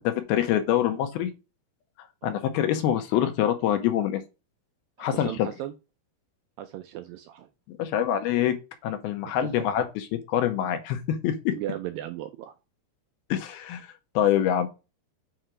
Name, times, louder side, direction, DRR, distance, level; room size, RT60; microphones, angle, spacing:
voice 1, 0.0-1.3 2.2-4.2 5.0-5.5 7.7-8.6 8.8-11.5 13.3-13.9 14.2-14.7, left 10 dB, 80° left, 2.7 m, -25 dB
voice 2, 5.0-5.7 6.6-7.5 9.3-9.7 11.5-12.6, right 13 dB, 85° right, 2.1 m, -37 dB
7.8 x 3.1 x 4.9 m
omnidirectional pair, 4.5 m